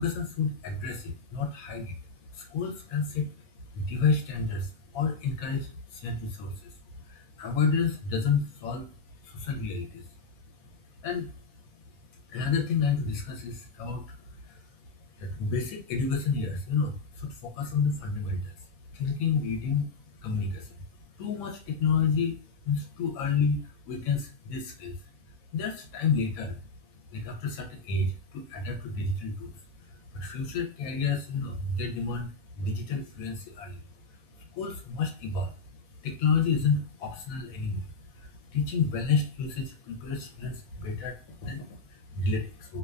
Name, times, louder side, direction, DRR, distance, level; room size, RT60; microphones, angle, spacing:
voice 1, 0.0-11.8 12.1-20.8 21.1-35.5 35.9-42.8, left 5 dB, 80° left, 2 dB, 1.0 m, -31 dB
2.5 x 2.2 x 2.2 m, 0.40 s
omnidirectional pair, 1.4 m